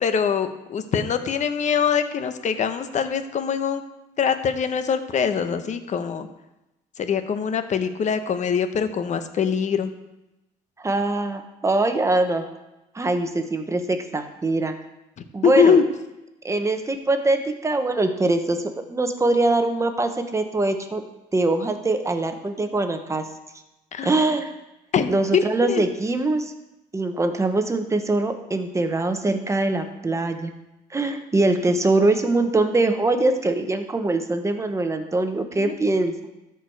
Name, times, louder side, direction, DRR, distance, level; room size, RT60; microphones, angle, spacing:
voice 1, 0.0-3.8 4.2-6.3 7.0-9.9 15.4-15.8 23.9-24.3 24.9-25.9 35.6-35.7, left 7 dB, 45° left, 9 dB, 0.9 m, -23 dB
voice 2, 10.8-12.4 12.9-14.7 15.3-15.8 16.4-21.0 21.3-23.2 24.0-24.5 25.1-26.5 26.9-30.5 30.9-36.1, right 2 dB, 15° right, 7 dB, 1.0 m, -23 dB
13.5 x 4.7 x 4.7 m, 0.96 s
cardioid pair, 110°, 17 cm